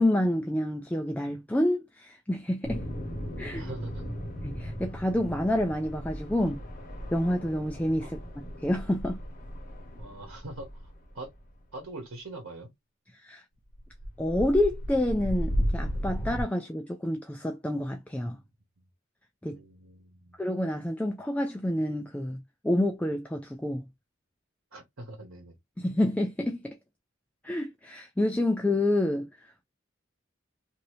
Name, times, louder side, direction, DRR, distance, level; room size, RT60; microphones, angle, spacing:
voice 1, 0.0-2.9 3.4-3.7 4.4-6.6 7.1-8.2 8.6-9.2 13.1-13.4 14.2-18.4 19.4-19.6 20.4-23.8 25.8-26.8 27.4-29.6, left 1 dB, 5° left, 0.3 m, -28 dB
sound 1, 2.6-11.4 13.7-16.4, equal, 40° left, 1.0 m, -35 dB
voice 2, 3.5-4.0 8.0-8.1 10.0-11.3 11.7-12.7 18.8-18.9 19.5-20.4 24.7-25.6, right 2 dB, 85° right, 1.0 m, -43 dB
2.8 x 2.6 x 3.1 m
head